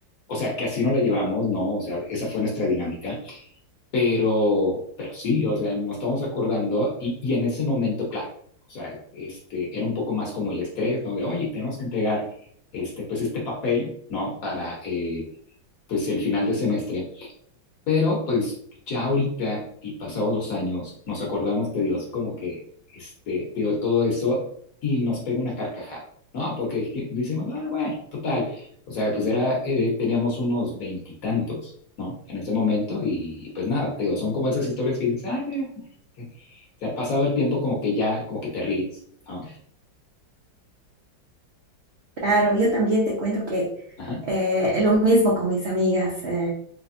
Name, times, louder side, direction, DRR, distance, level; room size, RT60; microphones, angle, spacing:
voice 1, 0.3-3.4 3.9-8.3 8.7-12.3 12.7-15.2 15.9-17.3 17.9-18.5 18.9-22.6 22.9-24.4 24.8-26.0 26.3-31.7 32.0-35.7 36.2-38.9 39.3-39.6 44.0-44.2, left 3 dB, 55° left, -2 dB, 1.1 m, -26 dB
voice 2, 42.2-43.7 44.2-46.5, right 1 dB, 65° right, -4 dB, 0.6 m, -21 dB
3.3 x 3.1 x 2.5 m, 0.62 s
omnidirectional pair, 2.1 m